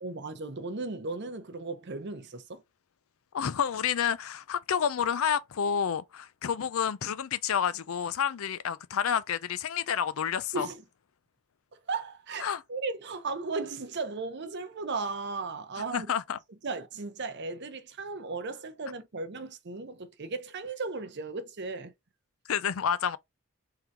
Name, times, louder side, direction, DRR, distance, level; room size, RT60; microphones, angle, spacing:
voice 1, 0.0-2.6 10.5-10.8 11.7-16.1 16.6-21.9, right 3 dB, 50° right, 0.7 m, -36 dB
voice 2, 3.3-10.7 12.4-12.6 15.9-16.4 22.5-23.2, left 8 dB, 70° left, 0.5 m, -29 dB
3.8 x 2.7 x 4.5 m
head